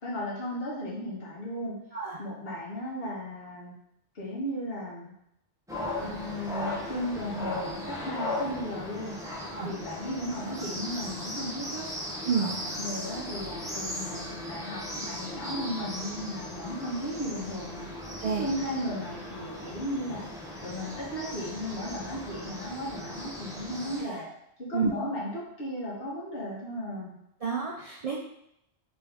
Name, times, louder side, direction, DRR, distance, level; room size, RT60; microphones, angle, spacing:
voice 1, 0.0-1.8 2.2-3.7 4.1-5.1 6.0-9.2 9.6-11.9 12.4-17.9 18.2-20.3 20.6-24.3 24.6-27.2, equal, 65° left, -4 dB, 1.4 m, -35 dB
sound 1, 5.7-24.0, left 1 dB, 5° right, 0.6 m, -37 dB
voice 2, 24.0-24.3 24.7-24.9 27.4-28.2, right 5 dB, 50° right, -3 dB, 0.4 m, -30 dB
3.6 x 3.0 x 3.5 m, 0.77 s
omnidirectional pair, 1.1 m